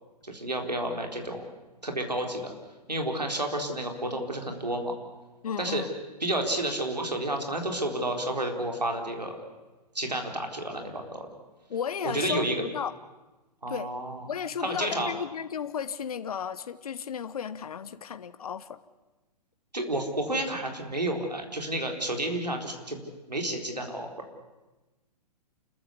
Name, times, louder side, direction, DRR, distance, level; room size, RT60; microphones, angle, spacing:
voice 1, 0.2-1.4 1.8-2.5 2.9-5.0 5.6-5.8 6.2-9.4 9.9-11.3 12.0-12.6 13.6-14.3 14.6-15.1 19.7-23.0 23.3-24.1, right 1 dB, 90° right, 3 dB, 4.0 m, -30 dB
voice 2, 5.4-5.9 11.7-13.0 13.7-13.9 14.3-18.8, left 7 dB, 65° left, 14 dB, 1.0 m, -34 dB
29.0 x 14.5 x 8.3 m, 1.1 s
figure-of-eight pair, 120°, 20 cm